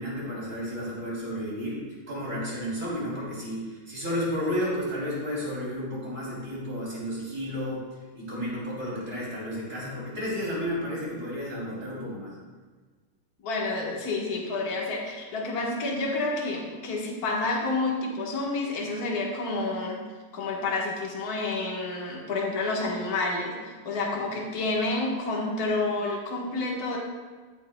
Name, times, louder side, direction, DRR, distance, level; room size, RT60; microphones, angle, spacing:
voice 1, 0.0-7.8 8.1-12.3, equal, 25° right, -7 dB, 3.3 m, -32 dB
voice 2, 13.4-20.0 20.3-27.0, left 2 dB, 55° left, -2 dB, 1.0 m, -29 dB
13.5 x 8.5 x 2.3 m, 1.4 s
omnidirectional pair, 3.7 m